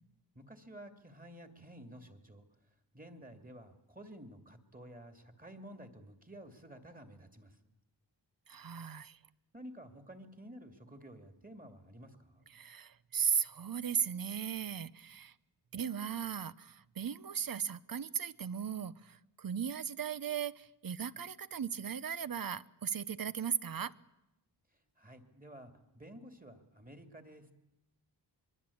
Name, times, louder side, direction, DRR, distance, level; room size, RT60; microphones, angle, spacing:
voice 1, 0.3-2.4 2.9-7.7 9.5-12.5 25.0-27.5, right 1 dB, 20° right, 2.7 m, -52 dB
voice 2, 8.5-9.2 12.5-15.3 15.7-23.9, right 8 dB, 50° right, 0.9 m, -37 dB
23.5 x 23.5 x 8.6 m
wide cardioid pair, 105°, 43 cm